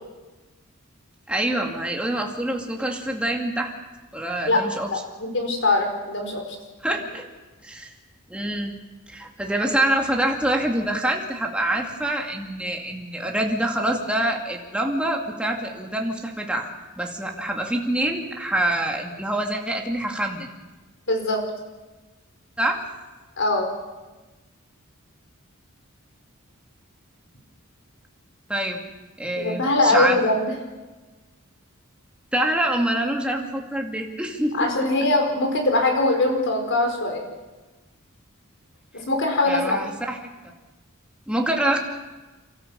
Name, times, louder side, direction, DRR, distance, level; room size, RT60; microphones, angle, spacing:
voice 1, 1.3-3.7 4.1-4.9 6.8-7.3 7.6-7.9 8.3-8.8 9.1-20.5 22.6-22.9 28.5-28.8 29.2-30.2 32.3-34.9 39.5-40.2 41.3-41.8, right 1 dB, 5° right, 1 dB, 2.4 m, -25 dB
voice 2, 4.9-6.4 21.1-21.4 23.4-23.7 29.4-30.5 34.5-37.3 38.9-39.8, left 2 dB, 60° left, 3 dB, 4.7 m, -22 dB
30.0 x 13.5 x 7.1 m, 1.2 s
head